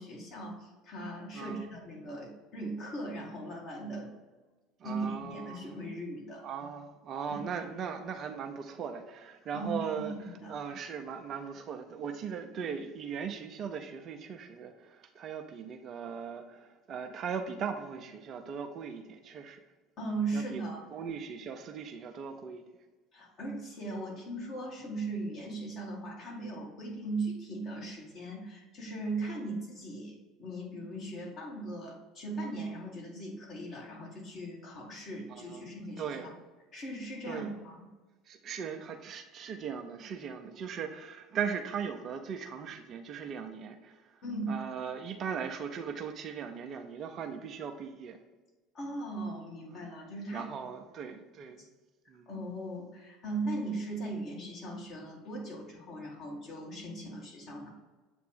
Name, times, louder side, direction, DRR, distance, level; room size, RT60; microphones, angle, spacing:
voice 1, 0.0-4.1 4.8-6.4 7.3-7.4 9.5-10.5 20.0-20.8 23.1-36.3 36.7-37.9 44.2-44.6 48.7-50.5 52.3-57.7, right 2 dB, 40° left, -2 dB, 1.8 m, -38 dB
voice 2, 1.3-1.7 4.8-5.8 6.4-10.1 10.5-19.6 20.3-20.6 20.9-22.6 35.3-35.7 36.0-36.4 37.2-37.5 38.2-44.2 44.5-48.2 50.3-51.7 52.1-52.3, right 6 dB, 40° right, 5 dB, 0.5 m, -39 dB
7.6 x 2.6 x 5.0 m, 1.2 s
figure-of-eight pair, 65°, 0 cm